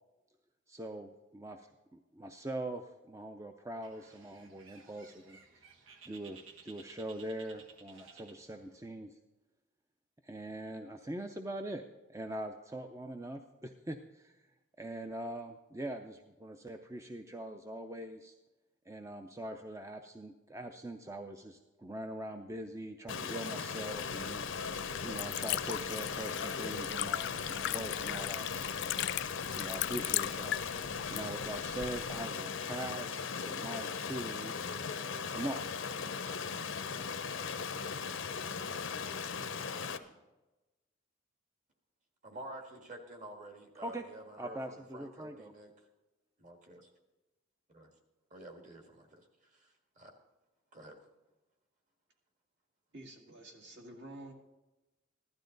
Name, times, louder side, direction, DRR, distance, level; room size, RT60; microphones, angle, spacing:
voice 1, 0.7-5.4 6.1-9.2 10.2-11.8 12.1-14.4 14.8-18.3 18.9-28.8 29.5-30.6 31.1-34.5 35.3-35.7 43.8-44.0 44.4-45.5, right 1 dB, 15° right, 6 dB, 0.5 m, -42 dB
Bird, 3.8-8.9, right 5 dB, 85° right, 1.2 m, -57 dB
Stream, 23.1-40.0, left 6 dB, 90° left, 0.8 m, -38 dB
Liquid, 23.7-32.3, left 13 dB, 60° left, 0.3 m, -39 dB
voice 2, 42.2-44.6 44.9-45.7 46.4-46.8 47.7-47.8 48.3-49.2 49.5-49.7 50.0-50.1 50.7-50.9, right 1 dB, 40° right, 4 dB, 1.8 m, -49 dB
voice 3, 52.9-54.3, right 1 dB, 60° right, 2 dB, 2.0 m, -49 dB
15.5 x 12.5 x 3.9 m, 1.1 s
head